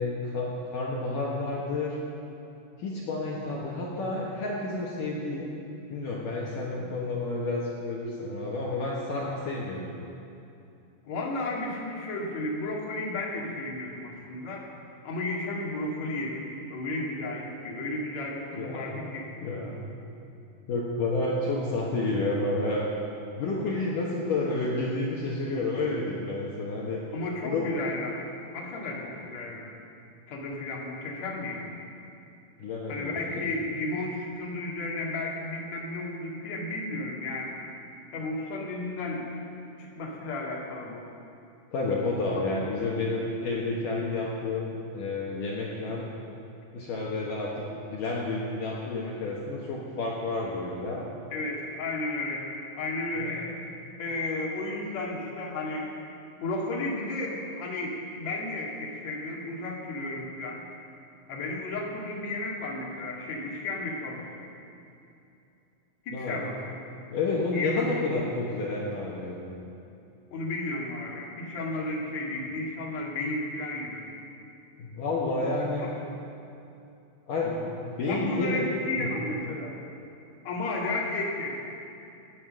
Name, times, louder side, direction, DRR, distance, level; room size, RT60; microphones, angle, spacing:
voice 1, 0.0-2.0 2.8-5.5 5.9-9.9 18.5-19.1 19.4-19.9 20.7-22.9 23.4-27.0 27.4-27.7 32.6-33.5 41.7-46.1 46.7-51.0 53.2-53.6 66.1-66.4 67.1-69.6 74.8-75.9 77.3-78.6 79.0-79.1, left 2 dB, 65° left, -4 dB, 2.3 m, -30 dB
voice 2, 11.1-14.7 15.0-19.3 27.1-28.3 28.5-29.7 30.3-31.8 32.9-37.6 38.1-39.3 39.8-41.0 51.3-52.5 52.7-53.5 53.9-55.9 56.4-60.6 61.3-64.3 66.0-66.5 67.5-68.0 70.3-74.0 75.8-75.9 78.1-79.7 80.4-81.6, left 2 dB, 45° left, -3 dB, 2.7 m, -33 dB
17.5 x 9.6 x 6.4 m, 2.7 s
omnidirectional pair, 5.4 m